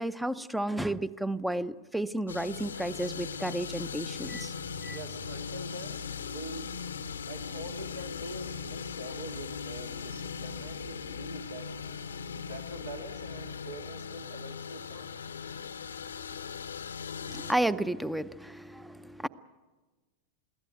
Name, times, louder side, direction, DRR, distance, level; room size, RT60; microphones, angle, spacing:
voice 1, 0.0-4.5 4.8-5.0 17.3-19.3, right 1 dB, 5° right, 16 dB, 0.6 m, -32 dB
sound 1, 2.3-17.5, left 6 dB, 75° left, 0.8 m, -39 dB
voice 2, 4.9-6.8 7.3-11.7 12.3-15.3, right 2 dB, 70° right, 5 dB, 2.1 m, -45 dB
22.5 x 16.0 x 9.1 m, 1.3 s
figure-of-eight pair, 90°, 0 cm